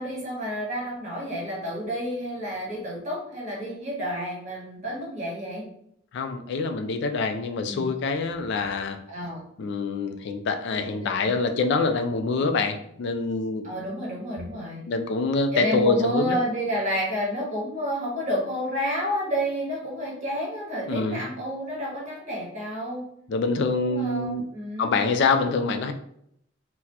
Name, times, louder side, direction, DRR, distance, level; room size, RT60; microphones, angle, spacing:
voice 1, 0.0-5.7 7.7-7.9 9.1-9.4 10.9-11.4 12.4-12.5 13.6-14.8 15.5-23.0 23.8-25.0, equal, 35° right, -5 dB, 1.4 m, -30 dB
voice 2, 6.1-9.0 9.6-13.7 14.9-16.4 20.9-21.2 23.3-24.4 24.8-25.9, left 3 dB, 60° left, 6 dB, 0.3 m, -25 dB
4.0 x 2.1 x 2.8 m, 0.73 s
head